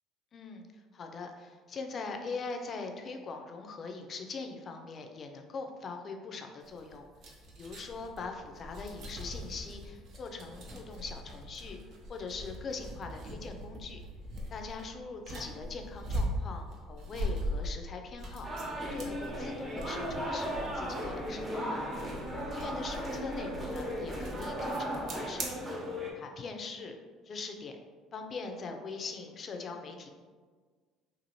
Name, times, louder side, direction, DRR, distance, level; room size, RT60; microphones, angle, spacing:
voice 1, 0.3-7.0 7.6-11.8 12.1-14.0 14.5-18.5 18.9-21.8 22.5-25.8 26.1-27.0 27.2-27.8 28.1-30.1, left 4 dB, 45° left, 4 dB, 0.4 m, -42 dB
sound 1, 6.6-25.5, equal, 60° right, 0.6 m, -41 dB
sound 2, 18.4-26.1, equal, 25° right, 0.8 m, -36 dB
2.7 x 2.5 x 2.9 m, 1.5 s
hypercardioid pair, 70°, 0 cm